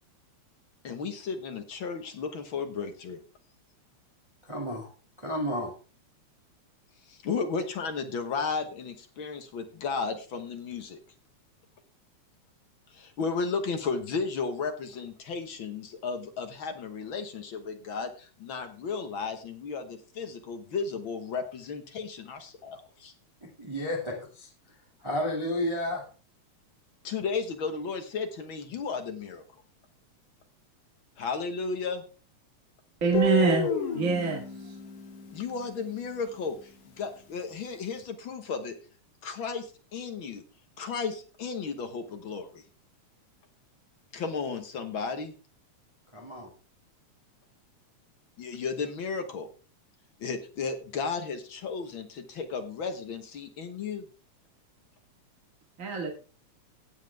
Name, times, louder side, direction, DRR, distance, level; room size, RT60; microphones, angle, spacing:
voice 1, 0.8-3.2 7.1-11.0 12.9-23.1 27.0-29.4 31.2-32.0 35.3-38.8 39.2-40.4 40.8-42.6 44.1-45.3 48.4-49.5 50.2-54.1, left 5 dB, 55° left, 7 dB, 1.6 m, -34 dB
voice 2, 4.4-4.9 5.2-5.7 23.6-24.5 25.0-26.0 46.1-46.5, left 1 dB, 10° right, -1 dB, 2.1 m, -31 dB
voice 3, 33.0-33.7 33.9-34.4 55.8-56.1, right 5 dB, 30° right, 1 dB, 1.9 m, -24 dB
Guitar, 33.1-36.1, left 4 dB, 75° left, 3.5 m, -31 dB
17.0 x 7.4 x 3.5 m, 0.36 s
omnidirectional pair, 3.3 m